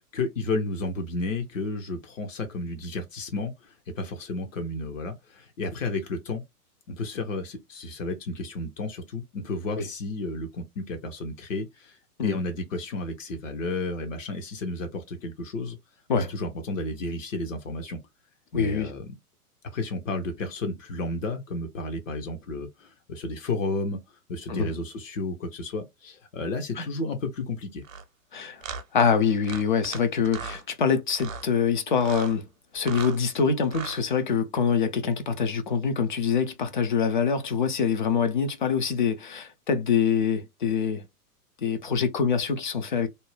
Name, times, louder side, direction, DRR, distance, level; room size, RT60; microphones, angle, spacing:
voice 1, 0.1-6.4 6.9-12.0 12.2-15.8 16.1-18.0 18.5-19.1 19.7-24.0 24.3-27.8, left 2 dB, 55° left, 0.8 m, -32 dB
voice 2, 18.5-18.9 24.5-24.7 26.8-26.9 28.3-28.6 28.9-32.5 32.7-41.0 41.6-43.1, left 6 dB, 35° left, 0.4 m, -25 dB
sound 1, 27.8-28.0 28.6-28.8 29.4-30.0 30.2-30.6 31.1-31.5 32.0-32.3 32.7-33.2 33.6-34.0, right 6 dB, 60° right, 0.8 m, -37 dB
2.7 x 2.1 x 3.1 m
figure-of-eight pair, 105°, 46 cm